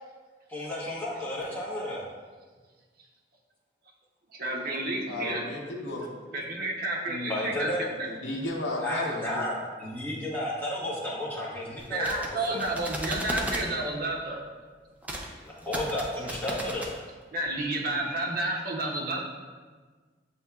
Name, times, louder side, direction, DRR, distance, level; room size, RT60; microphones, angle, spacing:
voice 1, 0.5-2.0 7.3-7.8 8.8-12.2 12.5-12.6 15.4-16.9, left 1 dB, 10° left, -6 dB, 0.9 m, -32 dB
voice 2, 4.3-5.5 6.3-7.7 11.9-14.4 17.3-19.2, right 2 dB, 55° right, -1 dB, 0.6 m, -30 dB
voice 3, 5.1-6.4 7.1-7.3 8.0-9.4, left 2 dB, 85° left, -2 dB, 0.6 m, -34 dB
sound 1, 11.8-13.7 15.0-15.3 15.6-16.9, right 1 dB, 10° right, 0.4 m, -35 dB
6.9 x 2.8 x 2.2 m, 1.4 s
head